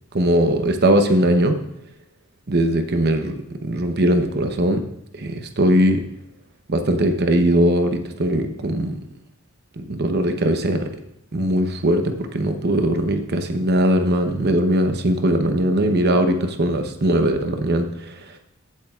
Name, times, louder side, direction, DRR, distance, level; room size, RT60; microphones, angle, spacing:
voice 1, 0.1-1.6 2.5-3.3 3.6-4.8 5.2-6.0 6.7-9.0 9.8-10.9 11.3-18.2, right 1 dB, 50° right, 6 dB, 0.9 m, -20 dB
16.0 x 7.4 x 2.4 m, 0.84 s
head